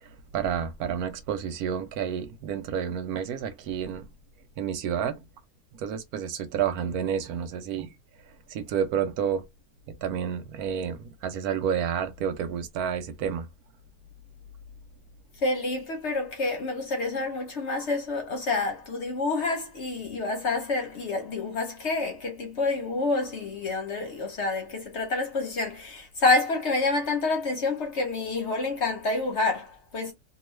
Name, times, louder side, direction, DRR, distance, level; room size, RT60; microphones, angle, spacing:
voice 1, 0.0-4.0 4.6-5.2 5.7-7.9 8.5-9.4 10.0-13.5, right 8 dB, 70° right, 1.0 m, -30 dB
voice 2, 15.4-30.1, left 3 dB, 55° left, 0.8 m, -28 dB
2.9 x 2.3 x 3.0 m
omnidirectional pair, 1.8 m